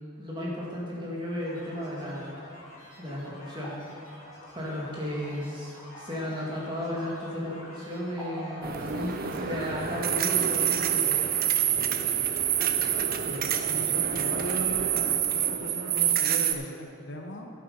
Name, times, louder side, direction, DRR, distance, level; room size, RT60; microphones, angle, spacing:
voice 1, 0.2-2.4 3.0-3.7 4.5-11.2, left 1 dB, 20° right, -5 dB, 2.3 m, -34 dB
sound 1, 1.4-11.1, left 1 dB, 70° left, 2.8 m, -50 dB
sound 2, 3.0-9.6, right 1 dB, 5° right, 2.2 m, -47 dB
sound 3, 8.6-16.5, right 9 dB, 40° right, 0.5 m, -27 dB
voice 2, 13.2-17.5, left 1 dB, 55° left, 2 dB, 0.9 m, -38 dB
10.5 x 8.3 x 5.2 m, 2.4 s
head